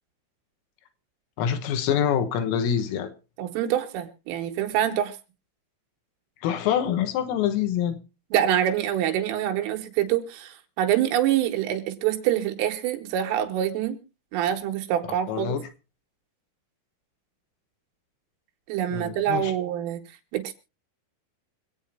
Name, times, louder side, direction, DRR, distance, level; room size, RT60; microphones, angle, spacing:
voice 1, 1.4-3.1 6.4-8.0 15.3-15.6 18.9-19.5, left 9 dB, 90° left, 3.8 m, -25 dB
voice 2, 3.4-5.2 8.3-14.0 14.3-15.6 18.7-20.0 20.3-20.5, right 11 dB, 85° right, 3.8 m, -25 dB
26.0 x 8.8 x 2.8 m
omnidirectional pair, 5.8 m